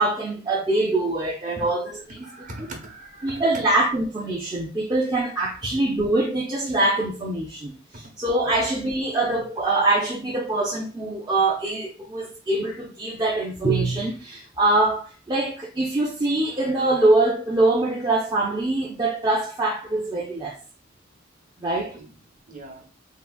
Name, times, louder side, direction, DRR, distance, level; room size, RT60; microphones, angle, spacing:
voice 1, 0.0-2.3 3.2-20.6 21.6-22.0, right 2 dB, 20° right, 0.5 m, -24 dB
voice 2, 2.2-3.4 8.4-8.6 21.9-22.2 22.5-22.9, right 1 dB, 45° right, 0.9 m, -40 dB
3.7 x 2.4 x 2.2 m
head